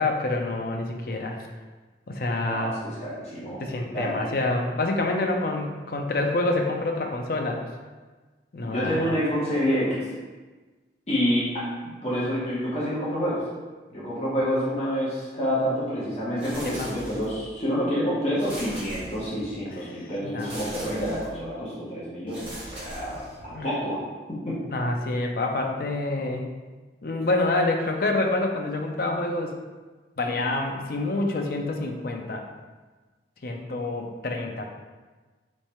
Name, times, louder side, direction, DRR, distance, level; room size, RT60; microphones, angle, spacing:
voice 1, 0.0-1.4 2.1-2.8 3.6-7.6 8.5-9.1 16.6-16.9 20.2-20.5 20.9-21.0 23.5-23.7 24.7-26.5 27.0-29.6 30.2-32.5 33.4-34.7, left 2 dB, 55° left, 2 dB, 0.5 m, -27 dB
voice 2, 2.5-4.3 8.6-10.1 11.1-13.4 13.9-24.0 24.3-24.6, equal, 35° left, -8 dB, 1.0 m, -28 dB
sound 1, 16.4-17.5 18.4-19.6 20.4-21.4 22.3-23.6, right 1 dB, 30° right, 1.4 m, -40 dB
3.2 x 3.2 x 4.4 m, 1.3 s
head